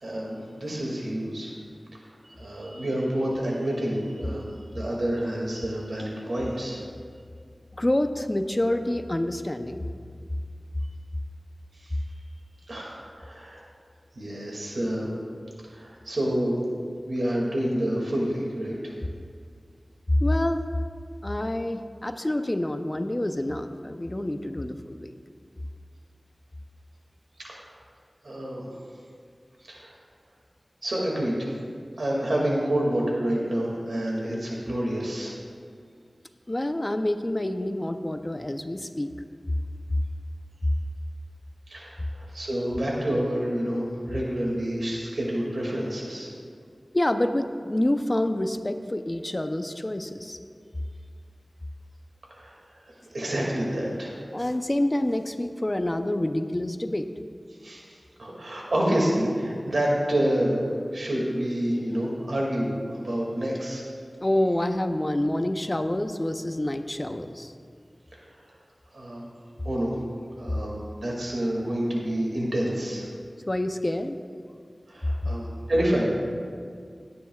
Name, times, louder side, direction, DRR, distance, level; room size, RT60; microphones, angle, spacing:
voice 1, 0.0-1.5 2.4-6.8 12.7-13.7 14.2-15.1 15.7-16.5 17.1-18.9 27.4-27.6 28.2-28.6 29.7-29.9 30.8-31.5 32.0-35.3 41.7-46.3 52.4-52.6 53.1-54.2 57.6-57.8 58.2-60.6 60.9-63.8 68.9-69.3 69.6-69.9 70.4-73.1 74.9-76.1, right 1 dB, 85° right, -3 dB, 2.2 m, -28 dB
voice 2, 7.7-9.9 20.1-20.6 21.2-25.1 36.5-39.1 46.9-50.4 54.3-57.1 64.2-67.5 73.5-74.2, left 1 dB, 30° left, 8 dB, 0.6 m, -27 dB
17.5 x 9.5 x 2.4 m, 2.1 s
wide cardioid pair, 55°, 0 cm